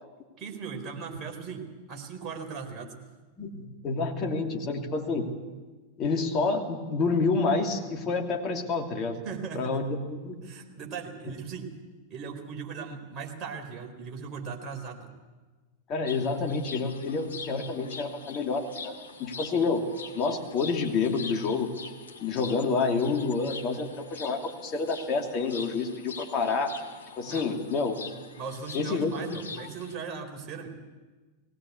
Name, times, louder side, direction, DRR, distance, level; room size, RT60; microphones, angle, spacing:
voice 1, 0.4-2.9 9.2-9.8 10.4-11.7 12.1-15.1 27.3-27.4 28.4-30.7, right 5 dB, 30° right, 1 dB, 4.4 m, -38 dB
voice 2, 3.4-5.3 6.0-9.2 9.5-10.4 15.9-19.9 20.1-21.7 22.2-26.7 27.2-28.2 28.7-29.4, left 4 dB, 35° left, 2 dB, 2.6 m, -28 dB
sound 1, 16.1-30.0, left 4 dB, 70° left, 2.2 m, -44 dB
20.0 x 17.5 x 8.4 m, 1.3 s
figure-of-eight pair, 90°, 0 cm